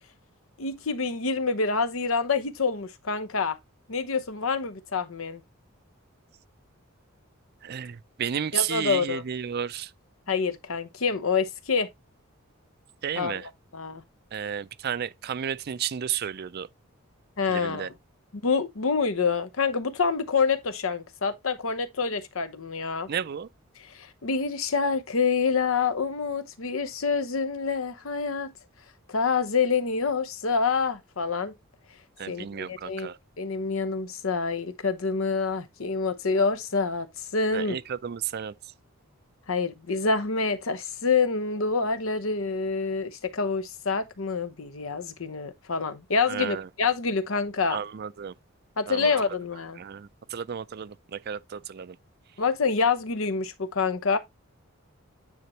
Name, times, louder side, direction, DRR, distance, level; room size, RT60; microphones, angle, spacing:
voice 1, 0.6-3.6 3.9-5.4 8.5-9.2 10.3-11.9 13.2-14.0 17.4-17.9 18.3-23.1 23.8-28.5 29.1-31.5 32.3-33.1 33.4-37.8 39.5-47.8 48.8-49.8 52.4-54.2, left 4 dB, 75° left, 0.8 m, -27 dB
voice 2, 7.6-9.9 13.0-13.5 14.3-16.7 17.5-17.9 23.1-23.5 32.2-33.2 37.5-38.5 46.3-46.7 47.7-48.3 48.9-49.1 49.8-52.0, right 8 dB, 50° right, 0.4 m, -32 dB
9.5 x 4.2 x 3.1 m
head